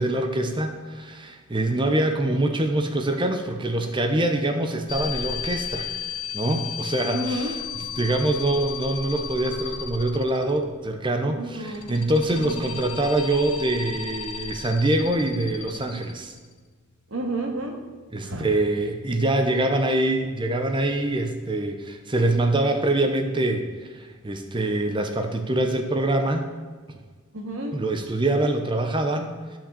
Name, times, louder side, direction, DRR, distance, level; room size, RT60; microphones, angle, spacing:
voice 1, 0.0-5.9 6.3-7.6 8.0-16.3 18.1-26.5 27.7-29.6, right 1 dB, 20° right, 5 dB, 0.8 m, -24 dB
sound 1, 4.9-10.7 11.5-16.5, left 7 dB, 80° left, 1.1 m, -34 dB
voice 2, 7.1-7.5 11.4-11.8 12.2-12.5 17.1-17.8 18.2-18.5 27.3-27.8, right 1 dB, 65° right, 1 dB, 1.8 m, -30 dB
12.5 x 5.9 x 6.9 m, 1.5 s
head